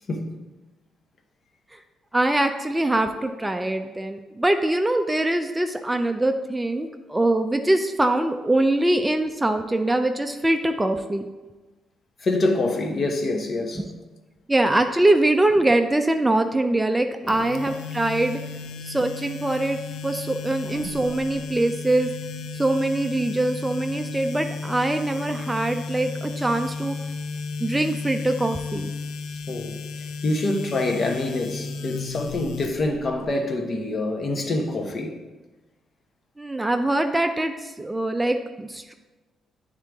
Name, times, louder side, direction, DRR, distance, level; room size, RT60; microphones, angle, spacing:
voice 1, 2.1-11.3 13.8-13.9 14.5-18.4 18.8-19.8 20.0-22.1 22.5-26.9 27.6-28.9 36.4-38.9, right 1 dB, 10° right, 0.4 m, -23 dB
voice 2, 12.2-13.8 17.2-17.5 20.6-20.9 29.5-29.8 30.2-35.2, left 2 dB, 45° left, 0.9 m, -26 dB
sound 1, 17.3-33.2, left 4 dB, 80° left, 0.4 m, -34 dB
8.9 x 3.7 x 3.5 m
cardioid pair, 90°, 0 cm